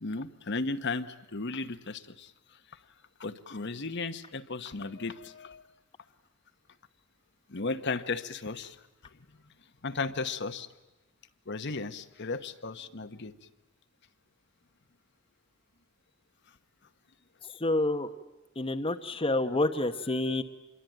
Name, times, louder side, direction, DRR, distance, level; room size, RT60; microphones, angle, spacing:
voice 1, 0.0-2.3 3.2-5.6 7.5-8.8 9.8-10.7 11.5-13.3 20.3-20.4, left 3 dB, 55° left, 9 dB, 1.1 m, -35 dB
voice 2, 17.6-18.1 18.6-20.4, left 2 dB, 25° left, 7 dB, 0.9 m, -28 dB
27.0 x 22.5 x 9.1 m, 1.0 s
head